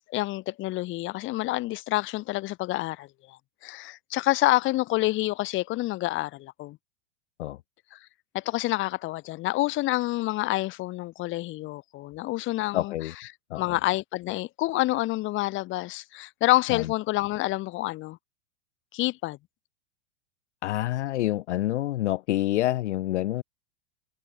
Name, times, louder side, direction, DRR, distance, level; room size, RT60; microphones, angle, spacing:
voice 1, 0.0-6.8 7.9-8.0 8.3-12.9 13.2-13.3 13.5-18.2 18.9-19.4, left 18 dB, 35° left, 0.9 m, -28 dB
voice 2, 12.7-13.1 13.5-13.6 16.7-16.8 20.6-23.4, left 15 dB, 75° left, 0.5 m, -27 dB
hypercardioid pair, 95°, 35 cm